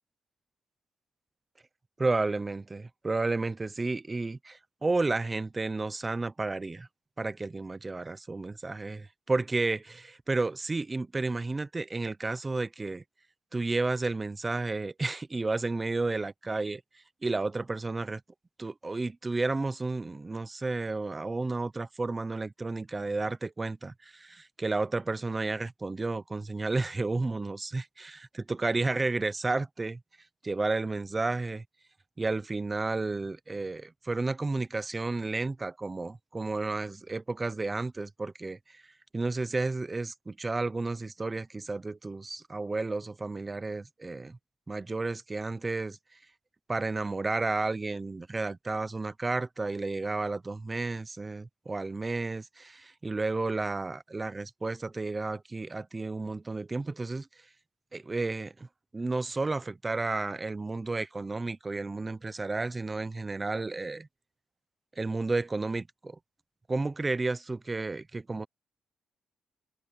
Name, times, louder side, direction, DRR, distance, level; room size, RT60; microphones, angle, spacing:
voice 1, 2.0-6.9 7.2-13.0 13.5-16.8 17.2-18.2 18.6-30.0 30.4-31.6 32.2-38.8 39.1-44.4 44.7-46.0 46.7-57.3 57.9-58.7 58.9-64.1 65.0-66.2 66.7-68.5, right 3 dB, 20° right, 0.8 m, -32 dB
cardioid pair, 120°, 0 cm